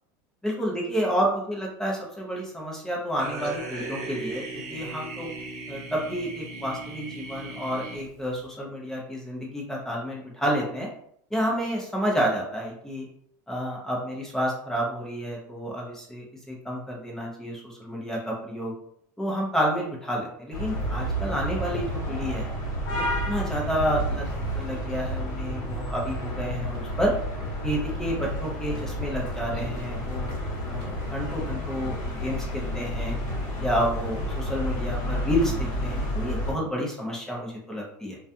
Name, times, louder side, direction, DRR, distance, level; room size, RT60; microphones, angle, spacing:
voice 1, 0.4-5.3 5.7-10.9 11.3-13.1 13.5-18.7 19.2-22.5 22.9-24.3 24.5-27.1 27.6-30.3 30.6-33.1 33.6-38.2, equal, 5° left, -3 dB, 0.7 m, -30 dB
sound 1, 3.2-8.4, right 2 dB, 50° right, 0.9 m, -37 dB
sound 2, 20.5-36.5, equal, 45° left, 1.1 m, -30 dB
2.3 x 2.2 x 2.7 m, 0.68 s
supercardioid pair, 135°, 9 cm